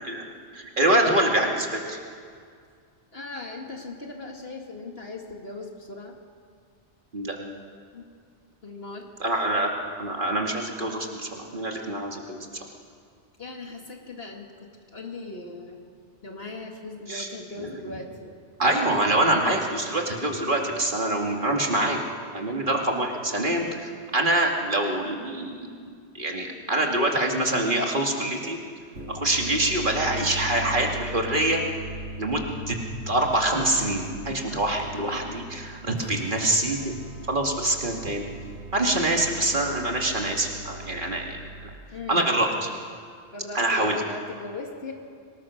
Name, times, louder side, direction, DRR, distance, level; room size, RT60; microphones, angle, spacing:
voice 1, 0.5-2.0 7.1-7.4 9.2-9.7 10.0-12.5 17.1-17.3 17.6-17.7 18.6-22.0 22.3-28.6 29.1-31.6 32.2-32.8 33.1-36.8 37.3-38.3 38.7-41.4 42.1-42.7 43.5-44.0, right 1 dB, 45° right, 1 dB, 2.6 m, -25 dB
voice 2, 3.1-6.2 7.9-8.0 8.6-9.1 13.4-15.8 16.2-18.4 26.6-26.9 34.5-34.8 36.0-36.2 38.8-39.2 41.9-42.4 43.3-44.9, left 2 dB, 55° left, 1 dB, 2.0 m, -39 dB
sound 1, 28.8-41.7, right 1 dB, 75° right, 3.2 m, -39 dB
24.5 x 19.5 x 6.4 m, 2.2 s
omnidirectional pair, 1.2 m